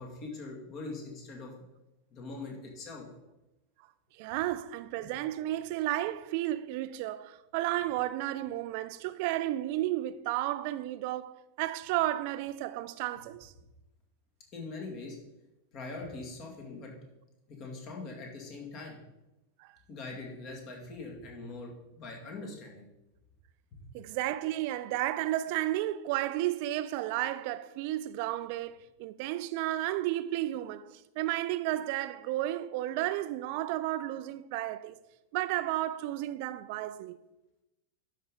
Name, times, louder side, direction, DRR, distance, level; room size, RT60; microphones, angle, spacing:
voice 1, 0.0-1.5 2.1-3.1 5.0-5.1 14.5-15.2 15.7-16.9 17.5-19.0 19.9-22.8 23.7-23.8, left 3 dB, 35° left, 2.2 m, -42 dB
voice 2, 4.2-13.5 19.6-19.7 23.9-35.0 35.3-37.2, right 14 dB, 45° right, 0.4 m, -33 dB
12.0 x 5.5 x 3.8 m
figure-of-eight pair, 90°, 0 cm